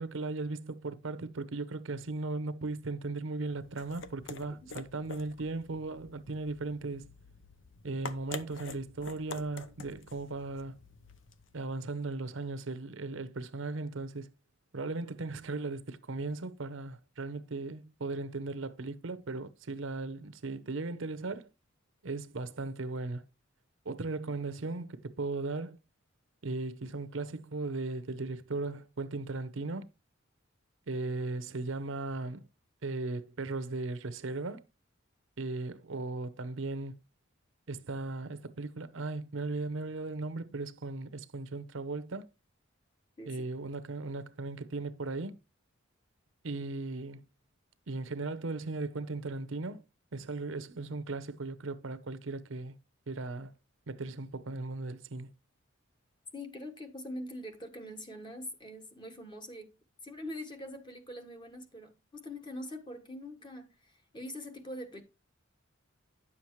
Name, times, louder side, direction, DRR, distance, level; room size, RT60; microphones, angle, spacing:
voice 1, 0.0-7.1 7.8-10.8 11.5-14.3 14.7-21.5 22.0-23.3 23.9-25.8 26.4-29.9 30.9-32.5 32.8-34.6 35.4-37.0 37.7-42.3 43.3-45.4 46.4-47.2 47.9-49.8 50.1-52.8 53.1-53.5 53.9-55.3, right 3 dB, 70° right, 0.7 m, -37 dB
sound 1, 3.4-11.6, left 3 dB, 65° left, 0.8 m, -47 dB
voice 2, 56.3-59.7 60.0-65.0, left 1 dB, 25° left, 1.3 m, -43 dB
9.9 x 7.2 x 3.1 m
head